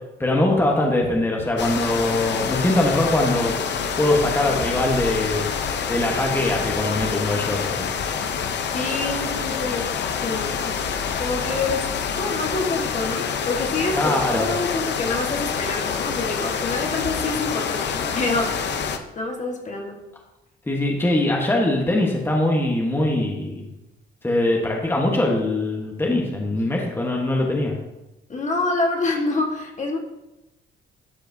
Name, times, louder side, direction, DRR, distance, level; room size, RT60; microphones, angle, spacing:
voice 1, 0.2-3.5 4.0-5.5 5.9-7.9 13.9-14.5 20.7-23.7 24.2-27.7, left 1 dB, 10° left, -1 dB, 1.2 m, -22 dB
sound 1, 1.6-19.0, left 6 dB, 60° left, 0.7 m, -27 dB
voice 2, 8.7-10.8 11.2-11.8 12.1-18.8 19.1-20.0 28.3-30.0, left 3 dB, 40° left, 1 dB, 1.5 m, -27 dB
12.0 x 4.9 x 2.7 m, 0.96 s
cardioid pair, 90°, 20 cm